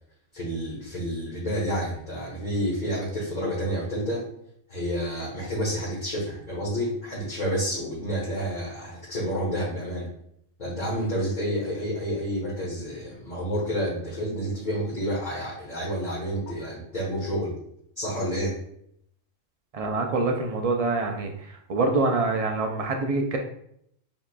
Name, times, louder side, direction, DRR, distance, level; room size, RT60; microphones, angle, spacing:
voice 1, 0.3-4.3 4.7-10.1 10.6-17.5 18.0-18.5, equal, 35° left, -7 dB, 1.3 m, -29 dB
voice 2, 19.7-21.3 21.7-23.4, right 3 dB, 65° right, 3 dB, 0.3 m, -25 dB
6.9 x 3.0 x 2.2 m, 0.71 s
omnidirectional pair, 1.3 m